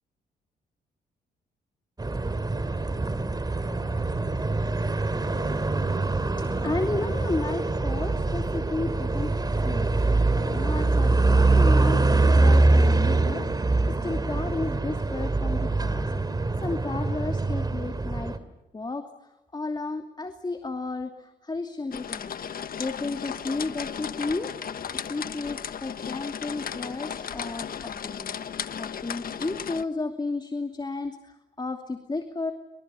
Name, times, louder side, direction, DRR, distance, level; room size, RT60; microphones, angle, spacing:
sound 1, 2.0-18.4, right 2 dB, 25° right, 2.8 m, -24 dB
voice 1, 6.6-18.4 18.7-22.3 22.8-32.5, left 3 dB, 25° left, 6 dB, 2.7 m, -33 dB
sound 2, 21.9-29.8, left 8 dB, 55° left, 1.4 m, -35 dB
28.5 x 26.0 x 7.0 m, 0.98 s
cardioid pair, 75°, 18 cm